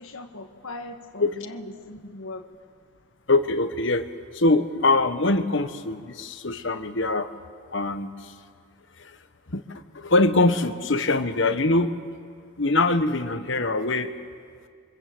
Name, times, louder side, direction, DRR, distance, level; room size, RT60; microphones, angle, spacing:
voice 1, 0.0-2.5, left 2 dB, 75° left, 4 dB, 1.8 m, -39 dB
voice 2, 3.3-4.1 4.3-7.3 7.7-8.3 9.0-9.2 9.5-11.9 12.6-14.1, left 2 dB, 55° left, 10 dB, 1.1 m, -23 dB
27.5 x 25.0 x 7.8 m, 2.1 s
head